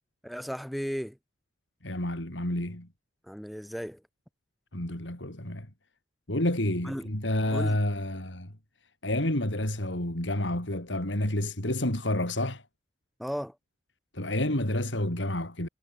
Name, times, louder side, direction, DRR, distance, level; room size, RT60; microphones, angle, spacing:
voice 1, 0.2-1.2 3.3-4.0 6.8-7.1 7.5-7.8 13.2-13.5, equal, ahead, 6.2 m, -35 dB
voice 2, 1.8-2.9 4.7-5.7 6.3-8.5 9.0-12.6 14.1-15.7, left 1 dB, 85° left, 5.1 m, -29 dB
head